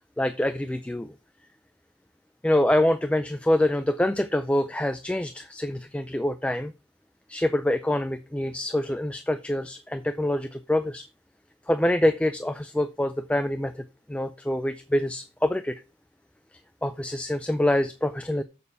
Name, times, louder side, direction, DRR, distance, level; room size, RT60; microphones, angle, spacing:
voice 1, 0.2-1.1 2.4-6.7 7.3-11.0 11.7-15.8 16.8-18.4, left 1 dB, 5° left, 10 dB, 0.4 m, -25 dB
6.9 x 6.8 x 5.5 m, 0.30 s
head